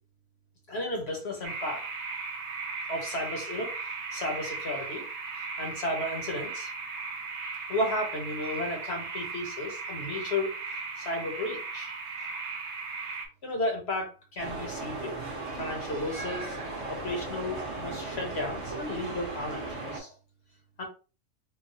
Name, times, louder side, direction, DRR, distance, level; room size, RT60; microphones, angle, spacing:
voice 1, 0.7-1.9 2.9-5.1 5.4-6.7 7.7-11.9 13.4-15.2 15.6-16.6 16.9-20.1 20.8-20.9, left 1 dB, 50° left, 0.9 m, -34 dB
sound 1, 1.4-13.3, right 4 dB, 65° right, 1.0 m, -37 dB
sound 2, 14.4-20.0, right 2 dB, 25° right, 0.9 m, -37 dB
3.9 x 2.3 x 2.6 m
omnidirectional pair, 1.6 m